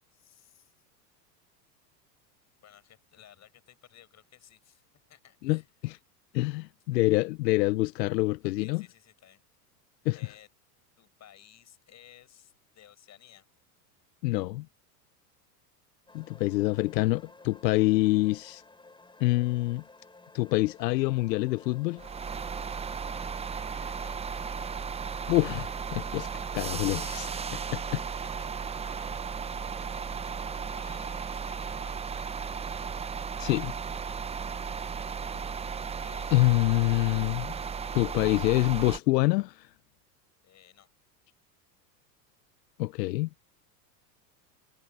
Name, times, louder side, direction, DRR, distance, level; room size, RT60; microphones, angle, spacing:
voice 1, 0.1-0.7 2.6-5.7 6.9-7.1 8.4-9.4 10.1-10.5 11.0-13.5 22.9-24.3 27.9-28.6 28.9-29.3 30.5-32.7 35.2-35.6 36.0-36.4 40.4-40.9, left 11 dB, 35° left, 5.8 m, -57 dB
voice 2, 5.4-6.0 6.3-8.8 10.1-10.2 14.2-14.7 16.1-18.6 19.2-19.8 20.3-22.0 25.3-26.3 26.5-27.3 27.7-28.0 33.4-33.7 36.3-37.5 37.9-39.7 42.8-43.3, left 19 dB, 80° left, 0.6 m, -26 dB
sound 1, 16.1-31.4, left 3 dB, 10° left, 7.2 m, -54 dB
sound 2, 22.0-39.0, right 6 dB, 15° right, 0.7 m, -35 dB
hypercardioid pair, 110°, 49 cm